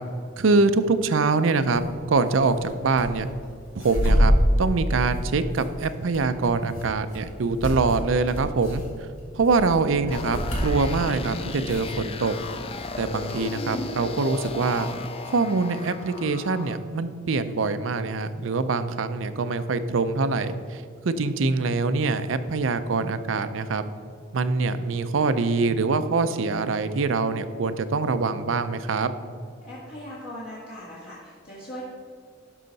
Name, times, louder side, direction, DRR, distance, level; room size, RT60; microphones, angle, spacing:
voice 1, 0.4-1.8 2.1-3.3 3.7-4.3 4.6-8.8 9.3-12.4 13.0-14.9 15.3-23.8 24.3-29.1, right 4 dB, 75° right, 11 dB, 0.5 m, -24 dB
sound 1, 1.7-1.9 2.2-3.0 3.4-11.2 11.7-12.4 12.7-13.1, equal, 90° left, 2.3 m, -26 dB
sound 2, 10.1-16.8, left 3 dB, 30° left, 0.4 m, -35 dB
voice 2, 29.6-31.8, left 1 dB, 55° left, -7 dB, 1.6 m, -39 dB
12.0 x 5.6 x 4.0 m, 2.3 s
head